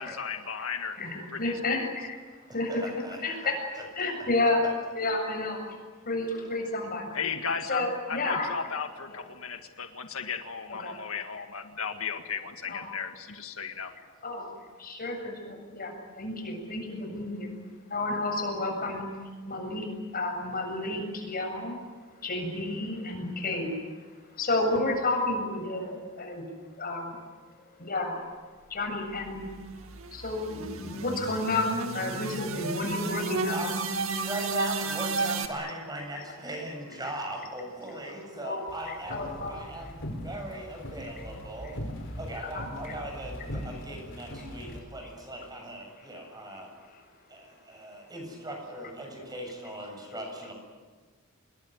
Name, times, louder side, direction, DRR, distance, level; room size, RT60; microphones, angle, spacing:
voice 1, 0.0-1.0 1.3-1.9 7.1-13.9, left 6 dB, 80° left, 6 dB, 1.8 m, -35 dB
voice 2, 1.0-2.2 2.5-4.7 4.9-5.6 6.0-7.1 7.6-8.5 9.1-9.2 10.7-10.9 12.7-12.9 14.2-14.5 14.8-17.5 17.9-19.1 19.4-19.9 20.1-21.8 22.2-23.8 24.3-26.5 26.8-27.2 27.8-28.2 28.7-29.5 30.1-33.7 34.7-34.8 35.6-35.7 36.2-36.6 37.0-37.2 37.9-38.0 38.4-39.9 41.0-41.3 41.6-41.7 42.4-43.0 43.5-43.8 44.4-44.7 45.0-45.1 46.0-47.0 48.8-48.9 49.3-49.4 49.7-49.8 50.1-50.2, left 2 dB, 45° left, 3 dB, 7.6 m, -32 dB
voice 3, 2.7-3.5 33.5-41.8 42.2-46.7 47.3-50.5, right 1 dB, 20° right, 2 dB, 7.5 m, -39 dB
sound 1, 29.1-35.5, right 3 dB, 80° right, 2.1 m, -33 dB
sound 2, 38.7-44.8, equal, 60° left, 4.3 m, -40 dB
27.0 x 21.0 x 9.6 m, 1.4 s
head